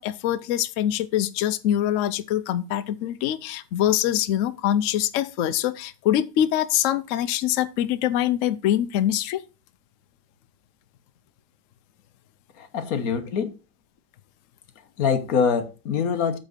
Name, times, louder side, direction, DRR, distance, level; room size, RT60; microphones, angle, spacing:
voice 1, 0.0-9.4, left 11 dB, 85° left, 0.6 m, -24 dB
voice 2, 12.5-13.6 15.0-16.4, left 6 dB, 55° left, 1.4 m, -24 dB
8.3 x 4.0 x 6.5 m
omnidirectional pair, 2.0 m